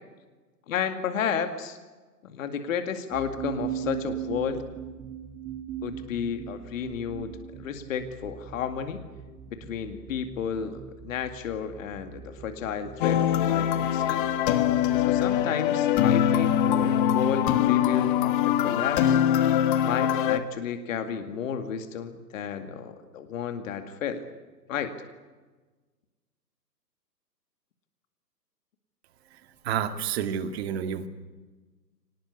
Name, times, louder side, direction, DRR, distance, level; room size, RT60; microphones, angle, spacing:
voice 1, 0.7-1.8 2.2-4.6 5.8-9.0 9.5-14.2 15.1-19.2 19.8-24.2 24.7-24.9, left 7 dB, 50° left, 8 dB, 2.3 m, -32 dB
sound 1, 3.1-15.5, right 8 dB, 15° right, 1.6 m, -40 dB
sound 2, 13.0-20.4, left 10 dB, 30° left, 1.4 m, -23 dB
voice 2, 29.7-31.1, right 8 dB, 40° right, 10 dB, 2.2 m, -29 dB
24.5 x 19.5 x 8.4 m, 1.3 s
hypercardioid pair, 140°, 50 cm